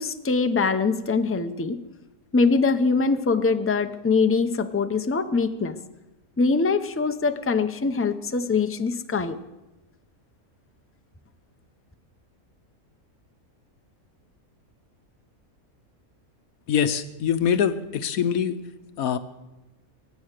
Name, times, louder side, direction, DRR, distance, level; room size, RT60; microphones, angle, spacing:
voice 1, 0.0-1.8 2.3-5.8 6.4-9.4, left 4 dB, 20° left, 9 dB, 0.3 m, -23 dB
voice 2, 16.7-18.6 19.0-19.2, left 8 dB, 75° left, 11 dB, 1.2 m, -23 dB
23.0 x 9.4 x 6.6 m, 1.0 s
omnidirectional pair, 1.5 m